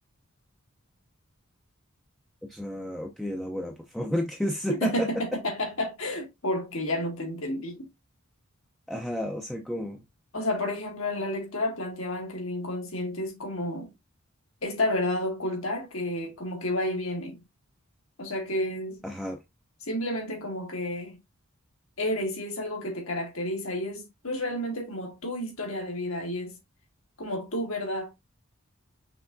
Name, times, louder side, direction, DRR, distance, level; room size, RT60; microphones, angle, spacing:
voice 1, 2.5-5.1 8.9-10.0 19.0-19.4, left 1 dB, ahead, 0.6 m, -31 dB
voice 2, 4.7-7.9 10.3-13.9 14.6-17.4 18.2-19.0 19.8-21.2 22.0-26.5 27.2-28.1, left 1 dB, 70° left, 1.9 m, -31 dB
5.8 x 3.4 x 2.6 m
head